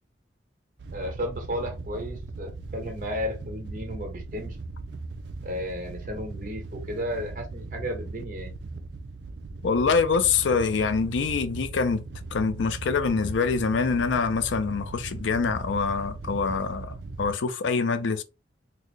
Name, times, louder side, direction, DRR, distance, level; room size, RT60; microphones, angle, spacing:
Wind / Boat Water vehicle, 0.8-17.3, right 3 dB, 65° right, 0.4 m, -38 dB
voice 1, 0.9-4.6 5.4-8.5, equal, 45° right, 1.3 m, -33 dB
voice 2, 9.6-12.0 12.3-18.2, left 5 dB, 90° left, 0.5 m, -25 dB
4.0 x 2.1 x 3.2 m
head